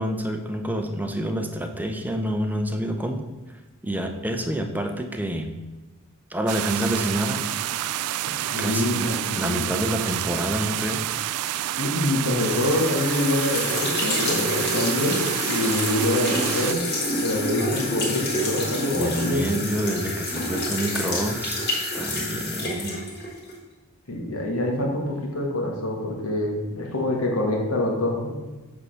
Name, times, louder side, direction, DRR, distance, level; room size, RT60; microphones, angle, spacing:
voice 1, 0.0-3.2 3.8-5.5 6.3-7.4 8.6-11.1 18.9-21.7 21.9-23.0, equal, 10° right, 5 dB, 0.6 m, -28 dB
sound 1, 6.5-16.7, right 13 dB, 85° right, 0.3 m, -29 dB
voice 2, 8.5-9.7 11.8-16.8 17.2-19.4 24.1-28.3, left 1 dB, 75° left, 0 dB, 1.7 m, -25 dB
sound 2, 12.1-23.6, left 1 dB, 50° left, 2.4 m, -28 dB
8.1 x 3.7 x 6.4 m, 1.2 s
head